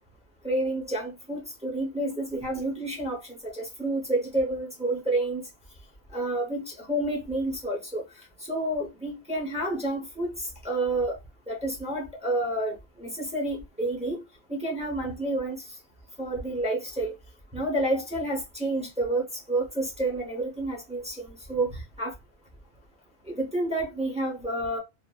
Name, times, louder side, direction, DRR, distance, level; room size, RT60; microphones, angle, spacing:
voice 1, 0.4-5.4 6.1-8.0 8.5-10.3 10.6-11.2 11.5-14.2 14.5-15.6 16.2-17.1 17.5-22.1 23.3-24.8, right 1 dB, 5° right, 0.8 m, -29 dB
3.3 x 2.0 x 2.3 m
omnidirectional pair, 1.2 m